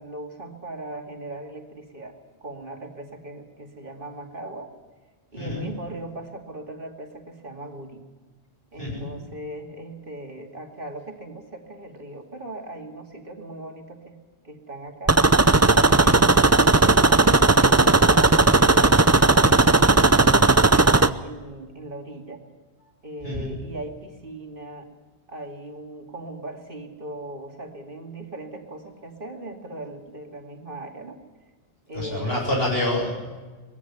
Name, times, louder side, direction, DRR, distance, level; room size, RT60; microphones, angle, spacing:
voice 1, 0.0-4.7 5.3-8.0 8.7-14.2 14.4-15.2 15.7-19.9 20.7-22.4 23.0-24.9 25.3-31.2 31.9-32.6, right 1 dB, 55° right, 3 dB, 2.7 m, -38 dB
voice 2, 5.4-5.7 8.8-9.1 23.2-23.5 31.9-33.1, left 1 dB, 65° left, -1 dB, 7.9 m, -27 dB
sound 1, 15.1-21.1, right 3 dB, 20° right, 0.5 m, -16 dB
21.5 x 16.0 x 9.6 m, 1.3 s
omnidirectional pair, 1.1 m